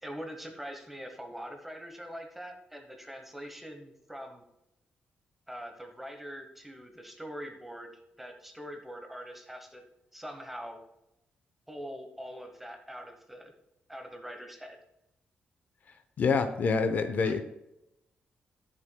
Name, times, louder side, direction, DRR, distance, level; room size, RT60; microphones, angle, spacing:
voice 1, 0.0-4.4 5.5-7.9 8.2-9.8 10.1-10.8 11.7-13.5 13.9-14.8 17.2-17.4, equal, 5° right, 4 dB, 1.1 m, -43 dB
voice 2, 16.2-17.4, left 4 dB, 50° left, 8 dB, 0.7 m, -26 dB
12.0 x 7.0 x 2.3 m, 0.87 s
wide cardioid pair, 160°, 4 cm